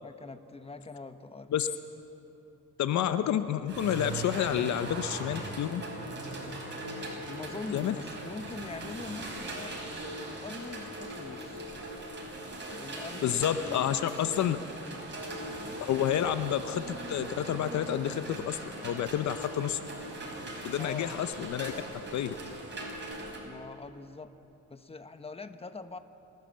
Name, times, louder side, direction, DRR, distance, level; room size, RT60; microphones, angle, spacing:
voice 1, 0.0-1.5 7.3-11.7 12.7-15.2 20.7-21.1 23.4-24.3 24.7-26.0, left 3 dB, 20° left, 9 dB, 1.1 m, -43 dB
voice 2, 2.8-5.8 7.7-7.9 13.2-14.6 15.8-19.8 20.6-21.7 22.1-22.3, left 10 dB, 65° left, 11 dB, 0.8 m, -29 dB
sound 1, 3.7-23.4, right 1 dB, 40° right, 5.5 m, -40 dB
28.0 x 12.5 x 7.5 m, 2.9 s
cardioid pair, 90°, 30 cm